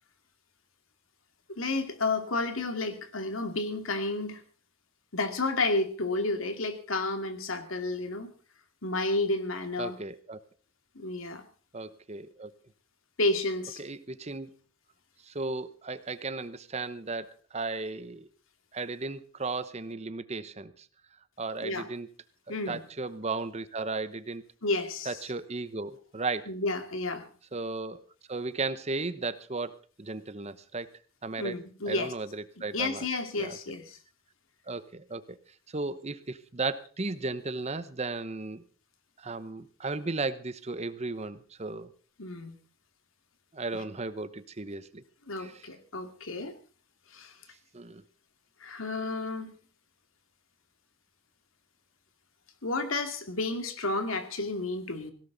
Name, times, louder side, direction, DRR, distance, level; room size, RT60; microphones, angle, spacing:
voice 1, 1.5-4.4 5.1-8.3 8.8-10.0 10.9-11.4 13.2-13.8 21.6-21.8 22.5-22.8 24.6-25.2 26.5-27.3 31.4-32.1 32.7-34.0 42.2-42.6 43.7-43.8 45.3-46.6 47.1-47.3 48.6-49.5 52.6-55.1, left 2 dB, 85° left, 7 dB, 2.5 m, -31 dB
voice 2, 9.8-10.4 11.7-12.5 13.8-14.5 15.3-18.3 18.7-20.7 21.4-22.1 22.5-24.4 25.1-26.5 27.5-28.0 28.3-29.7 30.0-30.9 31.2-31.6 31.9-33.0 33.4-33.6 34.7-35.2 35.7-38.6 39.2-41.9 43.5-45.0 45.4-45.7 47.7-48.0, right 3 dB, 30° right, 14 dB, 0.9 m, -35 dB
18.5 x 16.5 x 4.0 m, 0.40 s
head